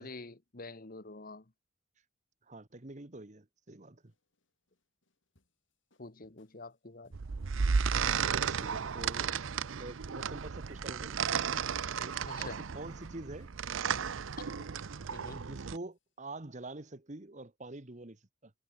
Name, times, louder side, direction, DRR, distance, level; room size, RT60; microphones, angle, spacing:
voice 1, 0.0-1.4 6.0-7.2 12.2-12.6 14.4-14.7 15.1-15.5, left 3 dB, 45° left, 1.4 m, -47 dB
voice 2, 2.5-4.0 8.5-9.4 9.7-11.2 12.0-13.5 15.3-18.5, right 2 dB, 40° right, 1.3 m, -46 dB
sound 1, 4.0-16.0, left 1 dB, 70° left, 6.0 m, -73 dB
sound 2, 7.1-15.8, right 6 dB, 80° right, 0.6 m, -34 dB
head